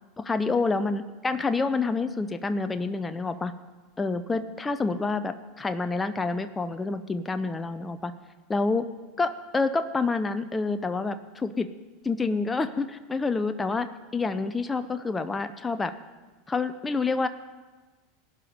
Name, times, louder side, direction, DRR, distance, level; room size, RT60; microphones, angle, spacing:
voice 1, 0.2-3.5 4.0-8.1 8.5-8.8 9.2-11.7 12.0-13.9 14.1-15.9 16.5-17.3, left 3 dB, 15° left, 10 dB, 0.7 m, -28 dB
16.5 x 6.0 x 9.3 m, 1.3 s
hypercardioid pair, 100°, 0 cm